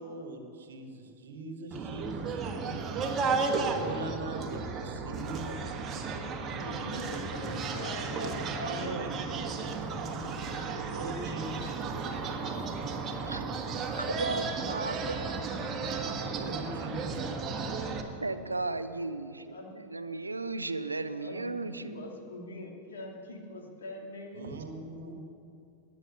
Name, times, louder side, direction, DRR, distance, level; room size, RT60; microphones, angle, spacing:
voice 1, 0.0-2.8 3.7-6.2 8.6-9.1 10.9-11.8 12.1-12.3 16.3-17.4 24.3-25.2, right 2 dB, 65° right, 6 dB, 1.5 m, -41 dB
sound 1, 1.7-18.0, right 4 dB, 25° right, 1.5 m, -34 dB
voice 2, 6.5-9.2 19.5-19.8 21.1-24.6, left 1 dB, 65° left, 1 dB, 2.4 m, -42 dB
voice 3, 14.1-15.3 15.6-15.7 18.2-22.0, right 3 dB, 80° right, 12 dB, 0.6 m, -35 dB
19.5 x 7.3 x 7.9 m, 2.6 s
figure-of-eight pair, 90°, 0 cm